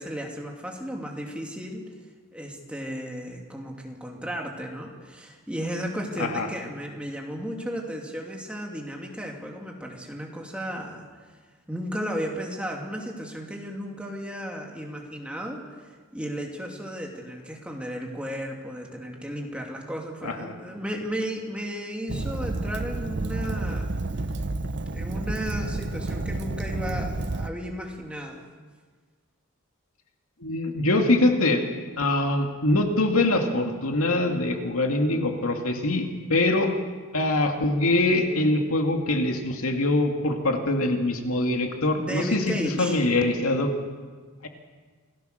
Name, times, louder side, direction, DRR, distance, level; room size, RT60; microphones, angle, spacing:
voice 1, 0.0-1.8 2.3-11.1 11.7-23.9 24.9-28.4 42.0-43.1, equal, 5° right, 0 dB, 2.8 m, -34 dB
Fire, 22.1-27.5, right 2 dB, 50° right, 0.8 m, -30 dB
voice 2, 30.4-31.6 32.0-36.7 37.1-43.7 44.4-44.5, left 2 dB, 70° left, 3 dB, 2.4 m, -23 dB
27.5 x 17.5 x 6.7 m, 1.5 s
head